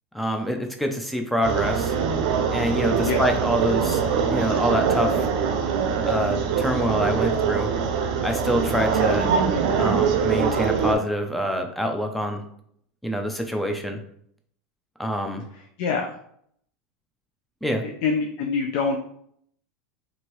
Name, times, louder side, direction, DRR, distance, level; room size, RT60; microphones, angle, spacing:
voice 1, 0.1-1.9 2.5-4.0 4.3-5.3 6.0-7.7 8.2-9.3 9.8-12.4 13.0-14.0 15.0-15.4 17.6-17.8, equal, ahead, 4 dB, 0.5 m, -26 dB
sound 1, 1.4-10.9, right 6 dB, 70° right, 0.5 m, -23 dB
voice 2, 15.8-16.1 17.8-19.0, left 5 dB, 65° left, 3 dB, 0.4 m, -25 dB
2.8 x 2.6 x 3.0 m, 0.67 s
supercardioid pair, 125°, 4 cm